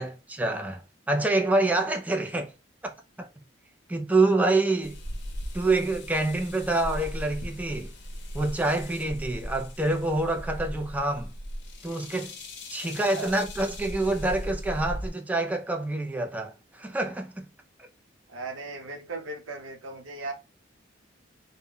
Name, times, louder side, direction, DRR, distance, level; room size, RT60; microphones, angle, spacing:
voice 1, 0.0-2.5 2.8-3.3 3.9-5.0 5.5-7.9 8.3-11.3 11.8-12.3 12.7-17.5 17.8-17.9, right 2 dB, 10° right, 0.3 m, -27 dB
sound 1, 4.8-15.1, equal, 60° left, 0.6 m, -38 dB
voice 2, 12.8-13.4 18.3-20.3, right 2 dB, 85° right, 0.6 m, -38 dB
2.1 x 2.0 x 3.6 m
head